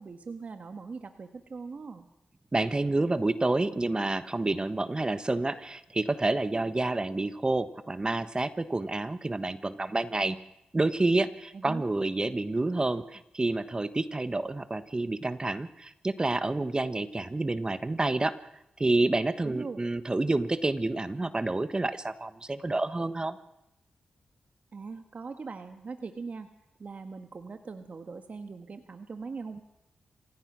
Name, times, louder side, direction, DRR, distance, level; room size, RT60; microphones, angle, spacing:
voice 1, 0.0-2.1 11.5-11.8 19.4-19.8 24.7-26.5 26.8-29.6, right 4 dB, 60° right, 7 dB, 1.5 m, -41 dB
voice 2, 2.5-10.4 10.7-18.4 18.8-23.4, right 2 dB, 30° right, 12 dB, 1.2 m, -29 dB
27.5 x 16.5 x 6.2 m, 0.88 s
cardioid pair, 50°, 3 cm